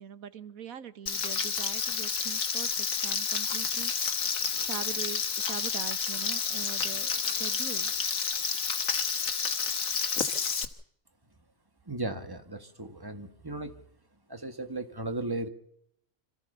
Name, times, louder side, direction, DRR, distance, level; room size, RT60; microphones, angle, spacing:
voice 1, 0.0-4.3 4.6-7.9, right 8 dB, 80° right, 14 dB, 1.6 m, -42 dB
Frying (food), 1.1-10.6, left 6 dB, 80° left, 2.0 m, -30 dB
voice 2, 11.9-13.8 14.3-15.5, right 2 dB, 15° right, 8 dB, 1.7 m, -36 dB
26.5 x 14.5 x 6.8 m, 0.71 s
omnidirectional pair, 1.4 m